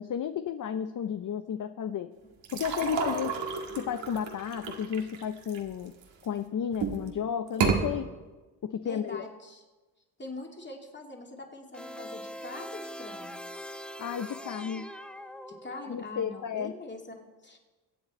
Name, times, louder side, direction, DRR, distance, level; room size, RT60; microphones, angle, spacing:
voice 1, 0.0-2.1 2.5-3.3 3.8-5.9 6.2-8.1 8.6-9.3 14.0-14.9 15.8-16.7, left 8 dB, 45° left, 10 dB, 0.7 m, -33 dB
sound 1, 2.4-6.2 6.7-7.1 7.5-7.8, right 6 dB, 80° right, 1.9 m, -31 dB
voice 2, 2.8-3.3 8.8-9.6 10.2-13.4 15.5-17.6, left 2 dB, 25° left, 1 dB, 2.6 m, -43 dB
sound 2, 11.7-16.1, equal, ahead, 0.7 m, -42 dB
23.0 x 8.0 x 4.3 m, 1.2 s
cardioid pair, 75°, 44 cm